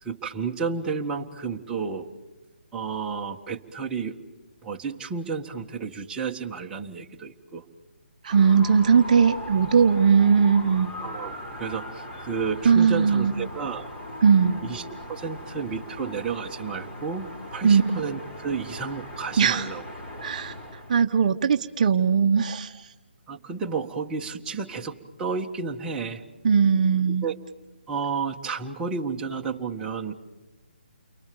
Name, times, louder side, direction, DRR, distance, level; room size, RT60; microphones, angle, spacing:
voice 1, 0.0-2.1 2.7-4.2 4.6-7.6 11.0-13.9 14.6-19.8 23.3-26.2 27.2-27.4 27.9-30.1, right 5 dB, 10° right, -1 dB, 1.7 m, -31 dB
voice 2, 8.2-10.9 12.6-13.5 14.2-14.6 17.6-18.0 19.4-19.7 20.2-20.5 20.9-22.9 26.4-27.3, right 6 dB, 45° right, 6 dB, 1.0 m, -19 dB
sound 1, 8.3-21.0, left 1 dB, 30° left, 5.0 m, -39 dB
30.0 x 24.0 x 7.1 m, 1.1 s
figure-of-eight pair, 150°, 6 cm